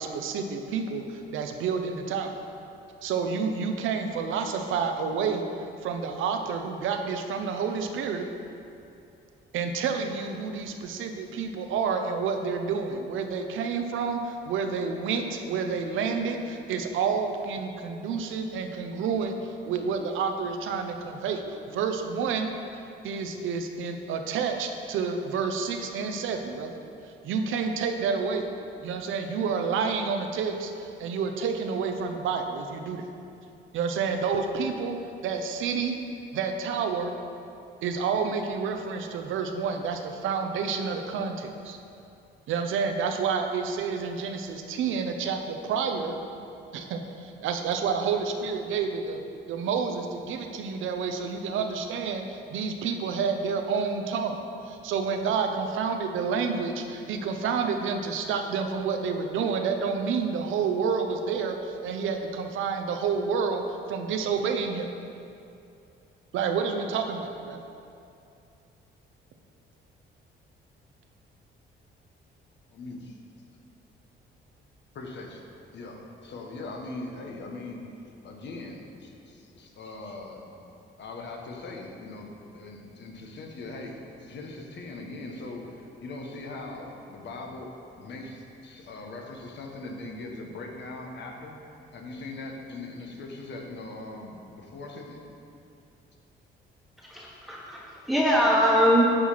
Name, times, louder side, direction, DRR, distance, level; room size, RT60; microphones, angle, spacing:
voice 1, 0.0-2.4 3.0-5.4 5.8-8.3 9.5-21.4 21.7-22.5 23.0-26.8 27.2-28.5 28.8-33.1 33.7-35.0 35.2-36.0 36.3-37.1 37.8-41.8 42.5-46.1 46.7-49.2 49.5-54.4 54.6-64.9 66.3-67.6, right 5 dB, 80° right, 5 dB, 0.8 m, -29 dB
voice 2, 72.7-73.2 74.9-75.4 75.7-77.8 78.2-80.5 81.0-91.6 91.9-95.2, left 2 dB, 65° left, 1 dB, 1.4 m, -40 dB
voice 3, 97.1-99.0, equal, ahead, -5 dB, 1.4 m, -22 dB
9.7 x 4.7 x 5.7 m, 2.6 s
cardioid pair, 90°, 20 cm